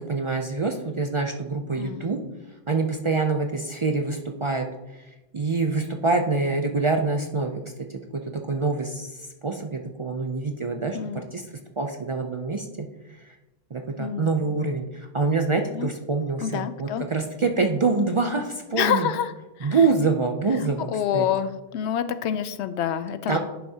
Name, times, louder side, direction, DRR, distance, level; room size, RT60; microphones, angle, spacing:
voice 1, 0.0-2.2 2.7-4.7 5.3-7.6 8.1-11.0 11.3-11.4 11.8-12.9 13.2-13.4 13.7-19.1 19.6-21.3 23.3-23.4, right 3 dB, 45° right, 4 dB, 0.4 m, -25 dB
voice 2, 1.8-2.1 10.9-11.2 14.0-14.3 15.7-15.9 16.4-17.0 18.8-19.3 19.6-19.8 20.9-23.4, left 9 dB, 90° left, 12 dB, 0.8 m, -27 dB
10.5 x 5.7 x 2.8 m, 1.0 s
omnidirectional pair, 1.1 m